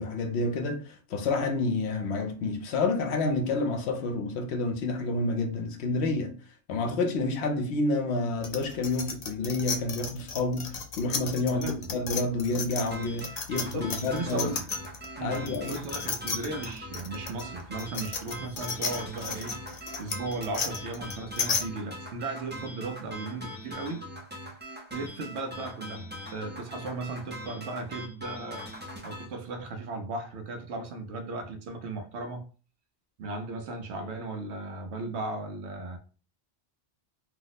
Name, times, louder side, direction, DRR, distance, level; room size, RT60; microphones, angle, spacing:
voice 1, 0.0-6.3 6.7-14.5 15.2-15.8, left 3 dB, 75° left, 0.9 m, -29 dB
sound 1, 8.4-15.0 15.3-21.6, left 5 dB, 45° left, 0.5 m, -33 dB
voice 2, 11.4-11.8 13.5-14.7 15.2-24.1 24.9-28.6 29.0-32.4 33.2-36.0, right 3 dB, 75° right, 0.9 m, -36 dB
sound 2, 12.9-29.3, equal, 15° right, 0.4 m, -42 dB
2.8 x 2.0 x 3.9 m
omnidirectional pair, 1.2 m